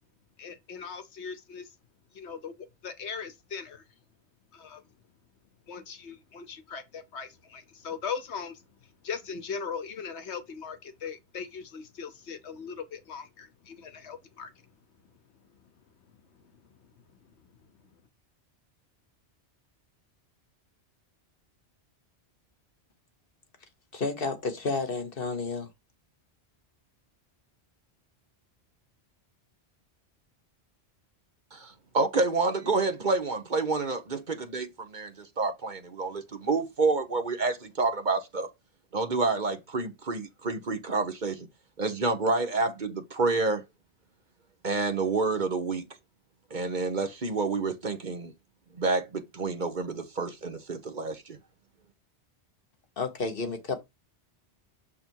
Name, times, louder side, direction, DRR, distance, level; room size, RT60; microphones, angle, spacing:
voice 1, 0.4-1.7 2.1-2.5 2.8-3.8 4.5-4.8 5.7-8.6 9.0-14.5, left 6 dB, 75° left, 1.2 m, -39 dB
voice 2, 23.9-25.7 53.0-53.8, left 4 dB, 55° left, 1.4 m, -31 dB
voice 3, 31.5-38.5 38.9-41.5 41.8-43.6 44.6-45.8 46.5-48.3 48.8-51.4, right 3 dB, 45° right, 1.1 m, -28 dB
6.7 x 3.6 x 4.5 m
omnidirectional pair, 1.1 m